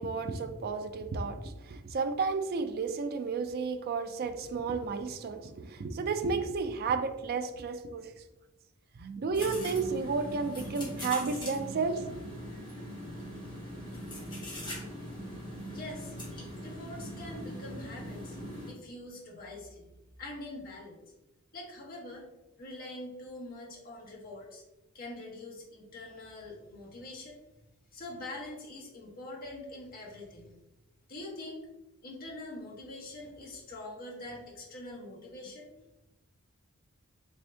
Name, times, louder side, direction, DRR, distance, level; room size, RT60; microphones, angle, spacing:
voice 1, 0.0-8.1 9.0-12.0, right 4 dB, 45° right, 8 dB, 0.3 m, -32 dB
sound 1, 9.3-18.7, equal, 20° left, 1.1 m, -41 dB
voice 2, 15.7-16.1 16.6-18.4 18.7-19.9 20.2-21.0 21.5-22.2 22.6-24.6 24.9-27.4 27.9-30.5 31.1-31.6 32.0-35.7, left 2 dB, 45° left, -3 dB, 1.0 m, -44 dB
3.5 x 2.6 x 3.3 m, 1.0 s
head